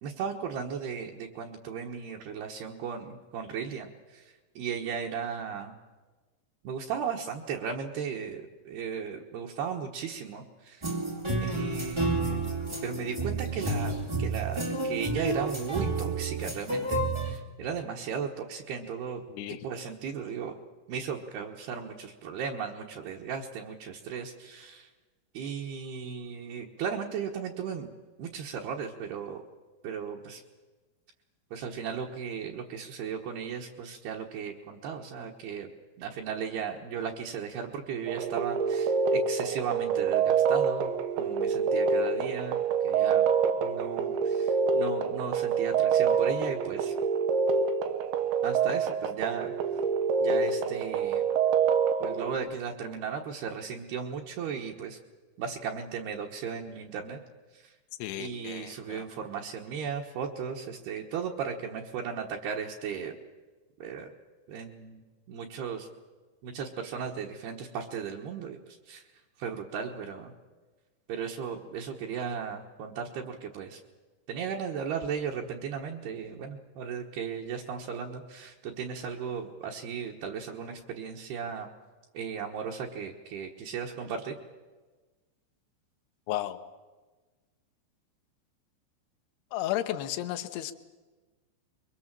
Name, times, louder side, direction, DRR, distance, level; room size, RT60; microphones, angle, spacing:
voice 1, 0.0-4.2 4.6-5.7 6.6-10.9 11.4-13.9 14.2-19.2 19.6-20.5 20.9-24.9 25.3-27.9 28.2-29.4 29.8-30.4 31.5-35.7 36.0-40.9 41.2-42.6 42.8-43.3 43.6-46.9 48.4-49.5 50.2-51.2 52.0-55.0 55.4-57.2 58.2-63.1 63.8-64.1 64.5-65.0 65.3-65.9 66.4-68.6 68.9-69.0 69.4-70.3 71.1-73.8 74.3-81.7 82.1-84.4, right 7 dB, 65° right, -2 dB, 3.0 m, -36 dB
sound 1, 10.8-17.4, right 2 dB, 25° right, 0.6 m, -30 dB
voice 2, 19.3-19.6 58.0-59.1 86.3-86.6 89.5-90.7, left 13 dB, 75° left, 7 dB, 3.0 m, -33 dB
sound 2, 38.1-52.4, right 6 dB, 85° right, 3.4 m, -26 dB
23.5 x 23.0 x 7.5 m, 1.3 s
omnidirectional pair, 5.2 m